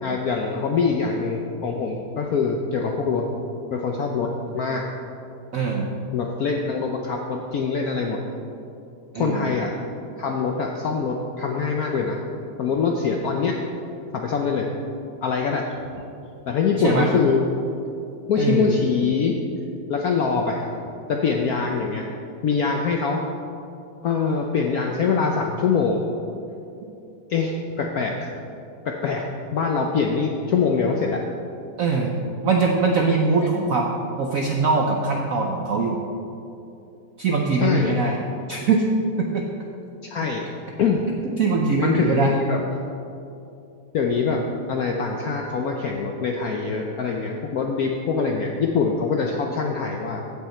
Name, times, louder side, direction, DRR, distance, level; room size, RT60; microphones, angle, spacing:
voice 1, 0.0-3.2 3.7-4.8 6.1-8.2 9.1-9.7 10.2-12.2 12.6-13.5 14.1-14.7 15.2-15.7 15.9-16.0 16.5-17.4 18.3-19.3 19.9-20.7 21.1-22.1 22.4-23.2 24.0-26.0 27.3-28.3 28.8-29.2 29.5-31.2 33.4-33.5 37.5-38.0 40.0-40.4 40.8-41.0 41.8-42.6 43.9-50.2, left 5 dB, 75° left, 1 dB, 0.8 m, -24 dB
voice 2, 5.5-5.8 9.1-9.5 16.8-17.1 18.4-18.8 31.8-32.1 32.4-33.9 34.2-36.0 37.2-38.2 38.5-38.9 39.2-39.4 41.4-42.4, right 4 dB, 70° right, 0 dB, 0.8 m, -22 dB
15.5 x 5.7 x 4.3 m, 2.8 s
omnidirectional pair, 2.3 m